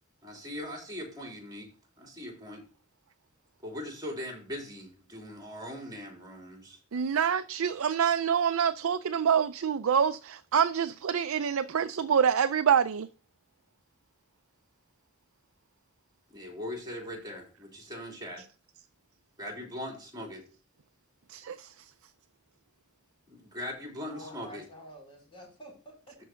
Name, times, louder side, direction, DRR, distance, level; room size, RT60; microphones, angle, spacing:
voice 1, 0.2-1.7 2.0-2.6 3.6-6.8 16.3-17.4 17.7-18.4 19.4-20.4 23.3-24.6, left 1 dB, 20° right, 3.2 m, -40 dB
voice 2, 6.9-13.1 21.3-21.7, right 7 dB, 85° right, 0.4 m, -26 dB
voice 3, 24.1-26.2, equal, 25° left, 4.6 m, -48 dB
12.5 x 4.7 x 3.8 m
head